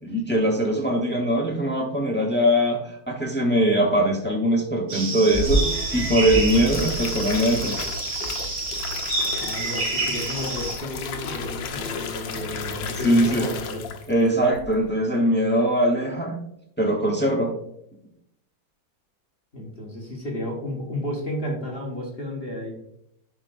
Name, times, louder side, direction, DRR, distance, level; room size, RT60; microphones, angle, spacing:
voice 1, 0.0-5.6 5.9-7.8 13.0-13.4 14.1-16.4 16.8-17.5, right 1 dB, 15° left, 0 dB, 0.4 m, -21 dB
sound 1, 4.9-10.8, right 2 dB, 85° right, 2.7 m, -29 dB
sound 2, 5.3-9.7, right 1 dB, 35° right, 2.7 m, -30 dB
sound 3, 6.2-14.2 14.5-14.9, left 5 dB, 75° left, 1.5 m, -34 dB
voice 2, 9.4-13.9 19.5-22.7, left 1 dB, 35° left, -2 dB, 1.4 m, -32 dB
11.0 x 5.1 x 2.5 m, 0.76 s
omnidirectional pair, 2.1 m